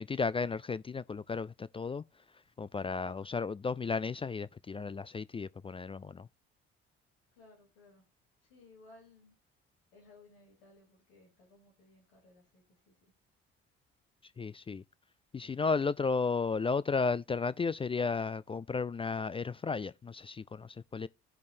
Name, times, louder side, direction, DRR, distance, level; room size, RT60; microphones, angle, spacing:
voice 1, 0.0-2.0 2.6-6.3 14.4-14.8 15.3-21.1, left 4 dB, 20° left, 0.3 m, -34 dB
voice 2, 7.3-8.0 8.4-9.3 9.9-13.0, left 2 dB, 90° left, 3.3 m, -60 dB
15.0 x 5.3 x 2.7 m
hypercardioid pair, 55°, 29 cm